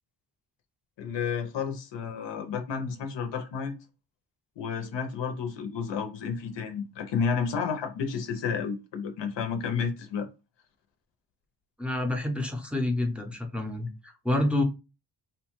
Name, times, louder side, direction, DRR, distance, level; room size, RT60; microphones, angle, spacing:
voice 1, 1.0-3.8 4.6-10.3, left 6 dB, 75° left, 0.6 m, -31 dB
voice 2, 11.8-14.6, left 1 dB, 5° right, 0.5 m, -28 dB
2.8 x 2.1 x 3.0 m
wide cardioid pair, 105°, 43 cm